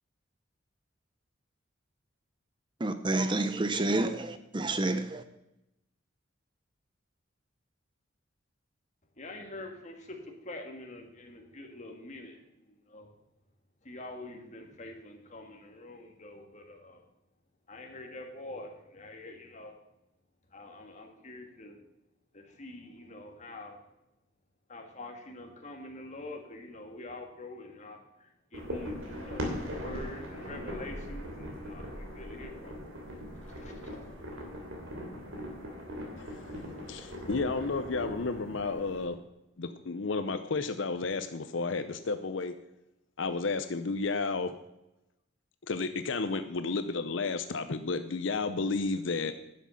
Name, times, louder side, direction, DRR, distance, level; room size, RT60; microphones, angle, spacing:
voice 1, 2.8-5.2, right 2 dB, 25° right, 0.6 m, -29 dB
voice 2, 9.2-13.1 13.8-17.1 17.7-19.8 20.5-21.8 22.3-23.8 24.7-32.8 33.1-34.2, left 2 dB, 35° left, 1.8 m, -46 dB
sound 1, 28.5-39.1, equal, 85° right, 3.0 m, -40 dB
voice 3, 36.2-39.2 39.6-42.5 43.2-44.5 45.7-49.3, left 4 dB, 65° left, 0.7 m, -32 dB
11.0 x 7.5 x 5.7 m
head